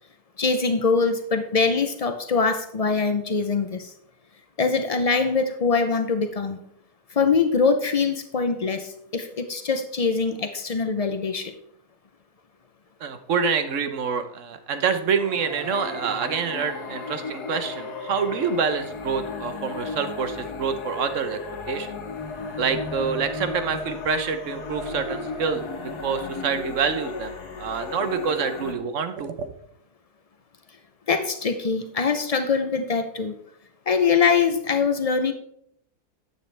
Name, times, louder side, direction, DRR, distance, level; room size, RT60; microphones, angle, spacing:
voice 1, 0.4-3.9 4.6-6.6 7.1-11.5 31.1-33.4 33.9-35.3, left 5 dB, 65° left, 8 dB, 0.3 m, -23 dB
voice 2, 13.0-21.4 21.7-21.9 22.6-25.6 26.0-29.5, right 6 dB, 55° right, 9 dB, 1.1 m, -26 dB
sound 1, 15.1-28.7, left 4 dB, 85° left, 1.9 m, -34 dB
10.5 x 8.6 x 3.3 m, 0.69 s
omnidirectional pair, 1.6 m